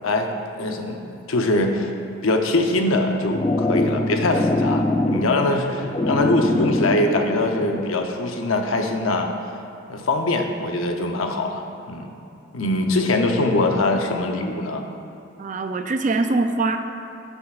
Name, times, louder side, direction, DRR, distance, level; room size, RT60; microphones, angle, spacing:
voice 1, 0.6-1.0 1.3-1.9 2.2-9.3 9.9-12.1 12.5-14.9, left 2 dB, 90° left, 4 dB, 0.8 m, -22 dB
sound 1, 2.9-7.9, left 2 dB, 20° left, 0.3 m, -24 dB
voice 2, 15.4-16.8, right 3 dB, 40° right, 7 dB, 0.5 m, -23 dB
13.0 x 7.8 x 2.5 m, 2.8 s
head